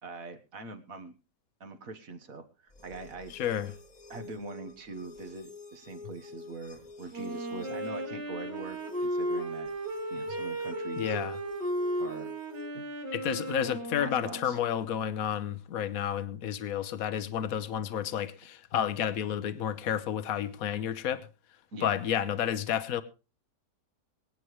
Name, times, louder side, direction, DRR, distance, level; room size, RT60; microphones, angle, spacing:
voice 1, 0.0-1.1 1.6-3.3 4.1-9.7 10.1-11.2 12.0-12.3 12.7-12.9 14.0-14.6 21.7-22.0, right 3 dB, 55° right, 1.8 m, -43 dB
sound 1, 2.7-12.7, left 3 dB, 25° left, 1.8 m, -49 dB
voice 2, 3.3-3.7 11.0-11.4 13.1-21.3 21.8-23.0, left 9 dB, 60° left, 1.3 m, -31 dB
Wind instrument woodwind instrument, 7.1-14.8, right 1 dB, 80° right, 2.9 m, -35 dB
23.0 x 9.5 x 3.2 m
omnidirectional pair, 1.8 m